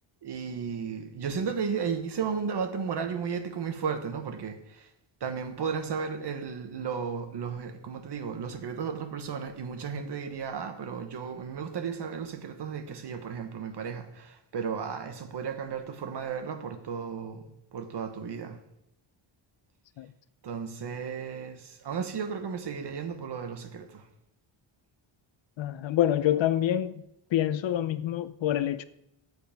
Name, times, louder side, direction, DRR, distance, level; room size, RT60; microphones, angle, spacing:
voice 1, 0.2-4.9 5.2-18.6 20.4-24.1, right 6 dB, 55° right, 1.1 m, -34 dB
voice 2, 25.6-27.0 27.3-28.8, left 11 dB, 65° left, 0.6 m, -26 dB
14.0 x 7.9 x 3.5 m
wide cardioid pair, 145°, 50 cm